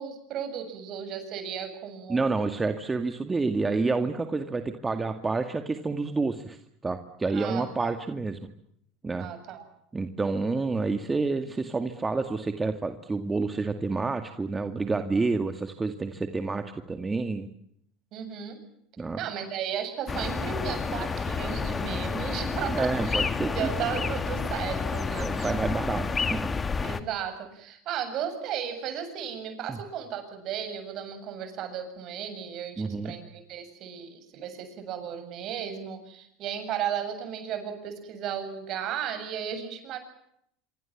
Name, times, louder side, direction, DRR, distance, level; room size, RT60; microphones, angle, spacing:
voice 1, 0.0-2.2 7.3-7.9 9.2-9.6 18.1-18.6 19.2-23.2 23.5-25.5 26.8-40.0, right 8 dB, 50° right, 9 dB, 7.5 m, -35 dB
voice 2, 2.1-6.6 6.8-8.4 9.0-9.3 9.9-17.5 19.0-19.2 22.7-23.7 25.2-26.5 29.7-29.8 32.8-33.1, right 3 dB, 20° right, 7 dB, 2.1 m, -29 dB
sound 1, 20.1-27.0, left 5 dB, 25° left, 2.2 m, -30 dB
27.0 x 24.5 x 7.4 m, 0.72 s
hypercardioid pair, 80°, 0 cm